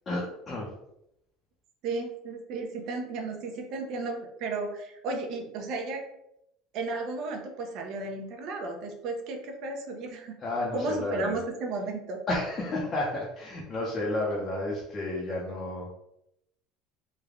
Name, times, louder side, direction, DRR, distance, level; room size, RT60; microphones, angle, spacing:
voice 1, 0.1-0.7 10.4-11.3 12.3-15.9, left 2 dB, 20° left, -3 dB, 0.6 m, -31 dB
voice 2, 1.8-6.0 6.7-10.4 10.7-12.2, right 3 dB, 45° right, 3 dB, 0.6 m, -34 dB
3.3 x 2.2 x 3.5 m, 0.80 s
cardioid pair, 170°, 0 cm